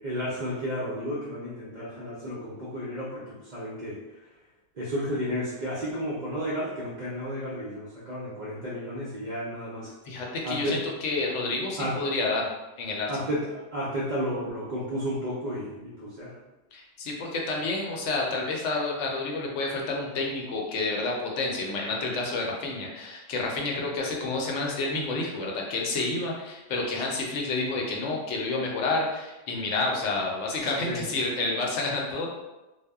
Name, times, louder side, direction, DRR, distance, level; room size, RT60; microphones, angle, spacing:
voice 1, 0.0-4.0 4.8-9.9 10.4-10.8 11.8-12.0 13.1-16.4 30.9-31.0, equal, 60° right, -7 dB, 0.4 m, -32 dB
voice 2, 10.1-12.5 12.8-13.1 16.7-32.3, left 3 dB, 70° left, -1 dB, 0.8 m, -29 dB
2.0 x 2.0 x 3.4 m, 1.0 s
omnidirectional pair, 1.3 m